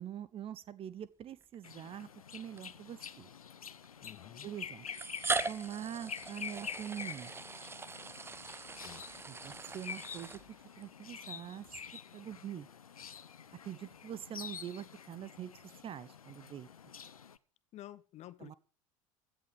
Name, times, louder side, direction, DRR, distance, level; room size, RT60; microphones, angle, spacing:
voice 1, 0.0-3.3 4.4-4.9 5.5-7.3 9.3-10.4 10.8-11.7 12.1-12.7 13.6-16.7 18.4-18.5, right 10 dB, 30° right, 1.1 m, -44 dB
sound 1, 1.4-1.5 2.6-2.7 3.8-3.9 4.9-10.9, right 4 dB, 15° right, 0.9 m, -40 dB
sound 2, 1.6-17.4, left 7 dB, 75° left, 0.8 m, -48 dB
voice 2, 4.0-4.5 8.7-9.0 17.7-18.5, left 14 dB, 40° left, 1.0 m, -51 dB
16.5 x 11.0 x 5.1 m
figure-of-eight pair, 75°, 18 cm